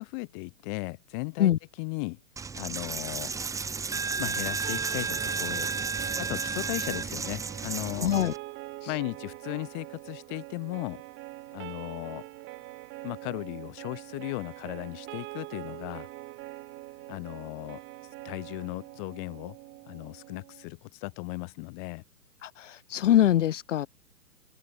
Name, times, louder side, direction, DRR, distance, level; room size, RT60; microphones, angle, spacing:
voice 1, 0.0-1.5 1.8-2.2 2.6-3.3 4.2-5.7 6.2-8.1 8.9-11.0 11.5-12.2 13.0-16.1 17.1-17.8 18.2-19.6 19.9-22.0, left 31 dB, 30° left, 4.0 m, -36 dB
Coin (dropping), 2.4-8.4, right 5 dB, 5° right, 1.8 m, -32 dB
sound 1, 4.6-20.7, right 20 dB, 25° right, 3.3 m, -44 dB
voice 2, 8.0-8.3 8.8-9.0 22.4-23.9, left 11 dB, 50° left, 0.5 m, -24 dB
open air
hypercardioid pair, 135°, 49 cm